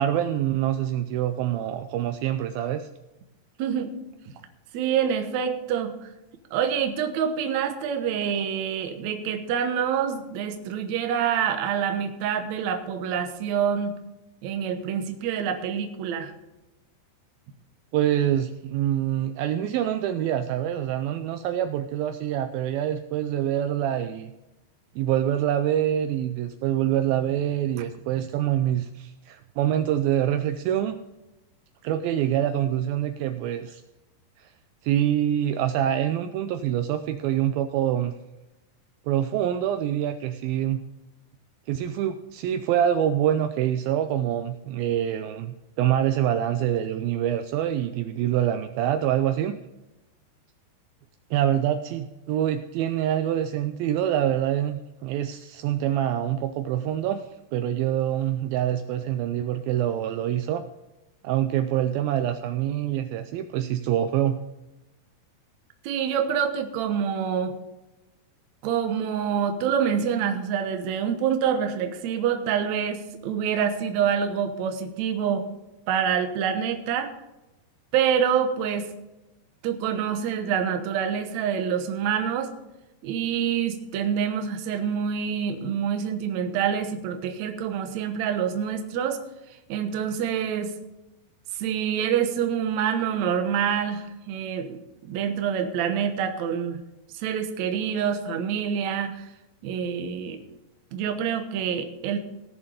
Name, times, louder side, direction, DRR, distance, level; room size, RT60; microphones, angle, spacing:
voice 1, 0.0-2.9 17.9-24.3 25.0-31.0 31.8-33.8 34.4-34.5 34.8-38.1 39.1-40.8 41.7-49.6 51.3-57.3 57.5-60.6 61.2-64.4, right 11 dB, 90° right, 8 dB, 2.1 m, -25 dB
voice 2, 3.6-3.9 4.7-6.1 6.5-14.0 14.4-16.3 65.8-67.6 68.6-75.5 75.9-77.1 77.9-78.9 79.6-82.5 83.0-89.2 89.7-90.7 91.5-96.8 97.1-99.2 99.6-100.4 100.9-102.2, right 8 dB, 70° right, 6 dB, 1.7 m, -26 dB
17.5 x 7.1 x 5.0 m, 1.0 s
omnidirectional pair, 4.8 m